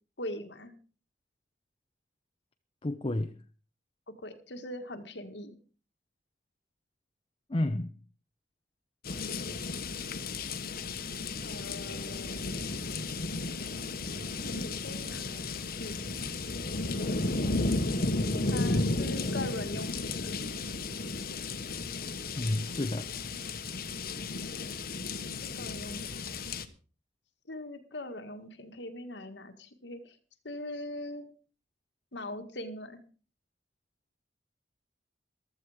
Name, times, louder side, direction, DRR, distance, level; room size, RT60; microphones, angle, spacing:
voice 1, 0.2-0.7 4.2-5.6 11.4-12.5 14.4-16.1 18.5-20.4 25.4-26.1 27.5-30.2 30.4-31.2 32.1-33.0, left 1 dB, 80° left, 1.9 m, -41 dB
voice 2, 2.8-3.3 7.5-7.9 22.4-23.1, left 1 dB, 30° left, 0.8 m, -30 dB
sound 1, 9.0-26.7, left 3 dB, 55° left, 1.3 m, -34 dB
15.0 x 13.5 x 5.0 m
head